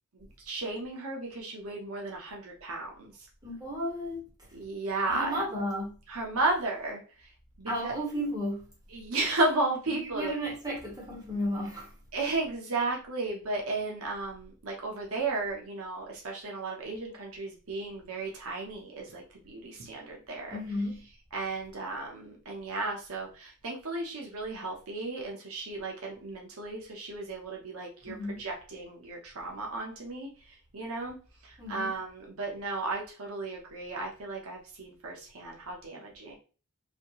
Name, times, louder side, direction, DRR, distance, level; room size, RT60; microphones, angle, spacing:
voice 1, 0.1-3.1 4.5-5.4 6.1-7.0 7.6-7.9 8.9-10.3 12.1-20.6 21.3-30.3 30.7-31.2 31.4-36.3, right 2 dB, 75° right, 0.9 m, -34 dB
voice 2, 3.4-4.2 5.1-6.0 7.7-8.7 9.9-11.9 20.5-21.0 28.1-28.4 31.6-31.9, equal, 15° right, 1.6 m, -33 dB
4.2 x 2.7 x 3.0 m
head